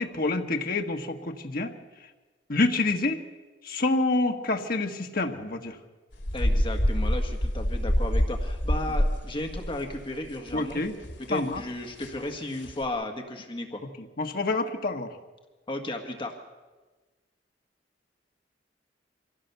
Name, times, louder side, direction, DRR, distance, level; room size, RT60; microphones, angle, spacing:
voice 1, 0.0-1.7 2.5-3.2 3.6-5.8 10.5-10.9 11.3-11.6 14.0-15.2, left 2 dB, 55° left, 4 dB, 1.6 m, -27 dB
sound 1, 6.1-10.8 11.0-11.2 11.5-11.6 12.0-12.2 12.6-12.9, equal, 85° left, 2.5 m, -26 dB
voice 2, 6.3-10.8 11.3-13.8 15.7-16.3, left 1 dB, 30° left, 3 dB, 1.7 m, -34 dB
24.5 x 16.5 x 6.9 m, 1.3 s
head